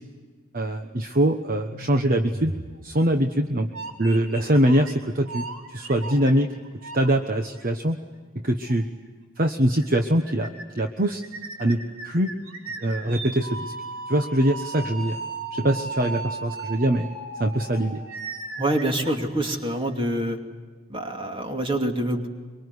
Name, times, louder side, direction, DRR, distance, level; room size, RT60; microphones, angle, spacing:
voice 1, 0.5-2.5 2.8-3.7 4.0-6.5 6.9-8.0 8.4-8.9 9.4-11.2 11.6-11.8 12.0-12.3 12.8-13.7 14.1-15.2 15.5-17.1 17.4-18.0, right 1 dB, 40° right, 5 dB, 1.2 m, -23 dB
sound 1, 1.7-3.2 3.7-4.9 5.3-7.1 7.6-7.7 8.7-8.8 9.1-9.2 9.4-9.5 9.8-10.0 10.3-10.8 11.2-19.9, right 3 dB, 85° right, 3.7 m, -36 dB
voice 2, 18.6-20.4 20.9-22.3, right 1 dB, 25° right, 3 dB, 2.6 m, -26 dB
24.0 x 24.0 x 9.7 m, 1.5 s
head